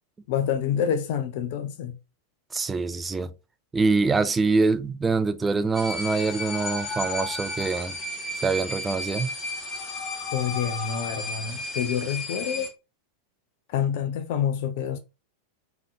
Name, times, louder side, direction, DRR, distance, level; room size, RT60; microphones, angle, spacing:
voice 1, 0.3-2.0 10.3-12.7 13.7-15.0, left 8 dB, 50° left, 0.6 m, -27 dB
voice 2, 2.5-3.3 3.7-8.0 8.4-9.3, right 4 dB, 15° right, 0.3 m, -24 dB
sound 1, 5.7-12.7, left 2 dB, 20° left, 1.2 m, -33 dB
3.8 x 3.3 x 2.6 m
figure-of-eight pair, 90°, 0 cm